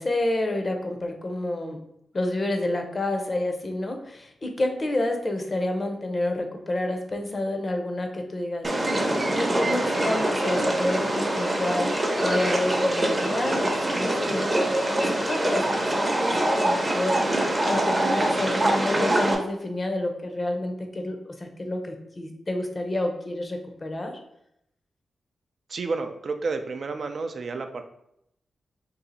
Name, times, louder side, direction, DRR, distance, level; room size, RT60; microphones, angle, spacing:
voice 1, 0.0-1.8 2.1-8.7 9.2-24.1, left 1 dB, 40° left, 5 dB, 0.6 m, -29 dB
sound 1, 8.6-19.4, right 1 dB, 25° right, 0.6 m, -24 dB
voice 2, 25.7-27.8, right 4 dB, 60° right, 7 dB, 0.3 m, -30 dB
2.7 x 2.4 x 4.0 m, 0.77 s
cardioid pair, 70°, 0 cm